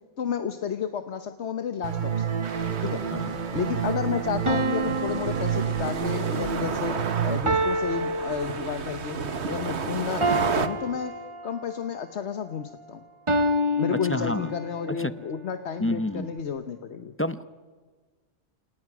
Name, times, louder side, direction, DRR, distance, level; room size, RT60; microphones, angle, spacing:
voice 1, 0.2-2.3 2.8-3.1 3.5-9.2 9.5-11.1 11.4-13.0 13.8-17.1, left 7 dB, 80° left, 8 dB, 1.4 m, -31 dB
sound 1, 1.8-7.4, right 8 dB, 50° right, 1.1 m, -29 dB
sound 2, 2.3-3.1 4.5-6.3 7.5-9.1 10.2-11.9 13.3-14.9, equal, 30° right, 1.1 m, -29 dB
sound 3, 2.4-10.7, right 5 dB, 80° right, 1.5 m, -33 dB
voice 2, 13.9-14.5 14.9-15.1 15.8-16.3 17.2-17.5, left 1 dB, 15° left, 12 dB, 0.6 m, -29 dB
29.0 x 28.5 x 6.1 m, 1.4 s
omnidirectional pair, 1.1 m